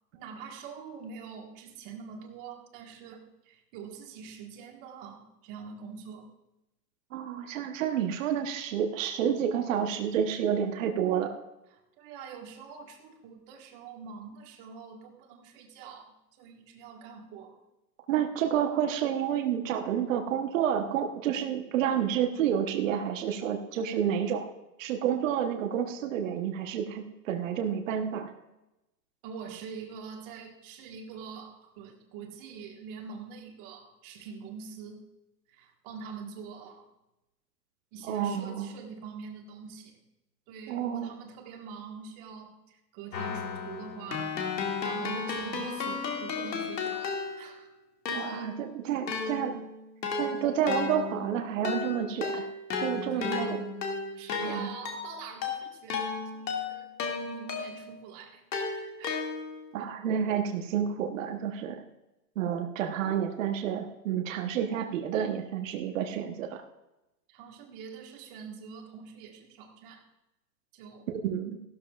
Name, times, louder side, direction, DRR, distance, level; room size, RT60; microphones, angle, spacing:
voice 1, 0.1-6.3 12.0-17.6 29.2-35.0 35.5-36.9 37.9-40.0 40.5-47.7 53.1-53.6 54.1-56.9 57.2-59.3 67.3-70.1 70.7-71.1, right 6 dB, 30° right, 2 dB, 1.6 m, -45 dB
voice 2, 7.1-11.3 18.1-24.5 24.8-28.3 38.1-38.7 40.7-41.1 48.1-49.6 50.2-52.5 52.8-53.6 54.4-54.7 59.7-61.8 62.4-66.6 71.1-71.6, right 9 dB, 50° right, 5 dB, 1.1 m, -29 dB
Keyboard (musical), 43.1-47.6 48.1-58.0 58.5-59.7, left 4 dB, 85° left, 2.3 m, -34 dB
16.0 x 12.5 x 2.4 m, 0.95 s
hypercardioid pair, 155°, 49 cm